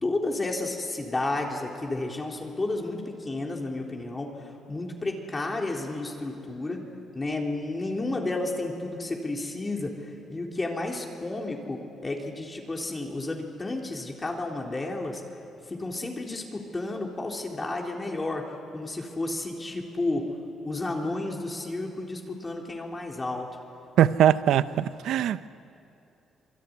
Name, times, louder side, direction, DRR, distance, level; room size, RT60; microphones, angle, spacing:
voice 1, 0.0-15.2 15.7-20.3 20.6-23.5, left 2 dB, 25° left, 0 dB, 3.7 m, -32 dB
voice 2, 24.0-25.5, right 11 dB, 80° right, 14 dB, 0.8 m, -21 dB
27.5 x 22.5 x 9.7 m, 2.7 s
cardioid pair, 90°, 0 cm